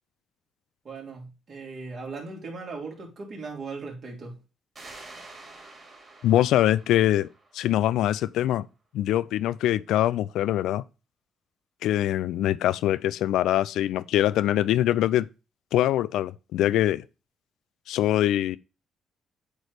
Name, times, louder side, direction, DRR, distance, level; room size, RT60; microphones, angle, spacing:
voice 1, 0.8-4.4, right 4 dB, 50° right, 2.9 m, -38 dB
sound 1, 4.8-8.1, right 2 dB, 30° right, 3.3 m, -48 dB
voice 2, 6.2-7.3 7.5-8.7 8.9-10.8 11.8-15.3 15.7-17.0 17.9-18.6, left 13 dB, 85° left, 0.3 m, -23 dB
8.1 x 3.2 x 4.9 m
cardioid pair, 90°, 0 cm